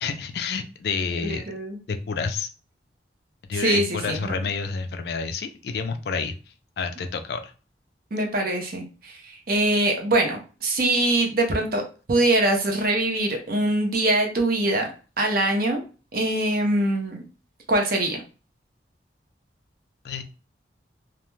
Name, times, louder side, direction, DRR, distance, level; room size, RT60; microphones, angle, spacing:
voice 1, 0.0-1.4 1.9-2.5 3.5-6.3 6.8-7.5 20.0-20.2, left 5 dB, 60° left, 8 dB, 0.3 m, -29 dB
voice 2, 1.3-1.8 3.5-4.3 8.1-14.9 15.2-15.8 16.1-17.2 17.7-18.2, right 1 dB, 55° right, 2 dB, 0.6 m, -23 dB
2.3 x 2.2 x 3.1 m, 0.35 s
head